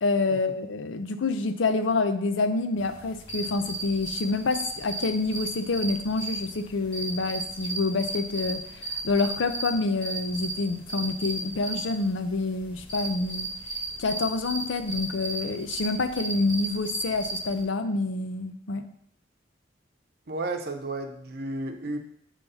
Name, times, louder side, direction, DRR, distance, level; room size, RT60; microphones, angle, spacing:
voice 1, 0.0-13.5 14.0-18.8, left 3 dB, 85° left, 9 dB, 0.6 m, -27 dB
sound 1, 2.8-17.6, right 2 dB, 30° left, 2.3 m, -35 dB
voice 2, 20.3-22.0, right 2 dB, 55° right, 5 dB, 0.7 m, -32 dB
6.8 x 3.1 x 5.5 m, 0.69 s
head